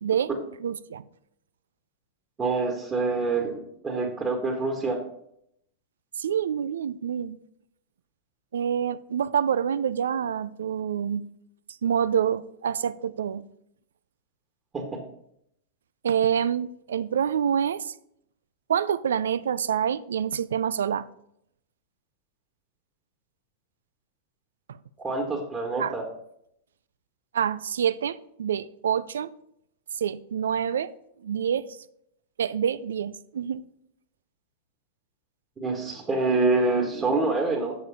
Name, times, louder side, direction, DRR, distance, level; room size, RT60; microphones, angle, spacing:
voice 1, 0.0-0.3 0.6-1.1 6.2-7.4 8.5-11.2 11.8-13.4 16.0-17.9 18.7-21.1 25.8-25.9 27.3-29.3 30.0-30.9 31.2-31.7 32.4-33.6, right 8 dB, 80° right, 0.4 m, -27 dB
voice 2, 2.4-5.0 14.7-14.8 25.0-26.0 35.6-37.8, right 3 dB, 20° right, 1.6 m, -26 dB
6.9 x 6.5 x 5.2 m
hypercardioid pair, 105°, 0 cm